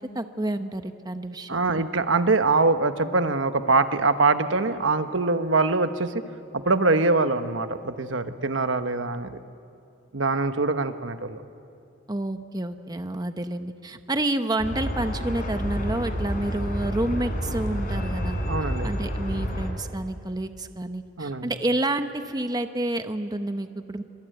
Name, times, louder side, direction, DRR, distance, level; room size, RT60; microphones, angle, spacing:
voice 1, 0.0-1.8 12.1-18.4 18.8-24.0, right 1 dB, 20° right, 8 dB, 0.9 m, -29 dB
voice 2, 1.5-6.2 6.5-9.4 10.1-11.4 18.5-18.9 21.2-21.5, right 3 dB, 85° right, 9 dB, 1.2 m, -23 dB
sound 1, 14.6-19.7, equal, 45° left, 4.5 m, -29 dB
25.0 x 25.0 x 9.3 m, 2.5 s
head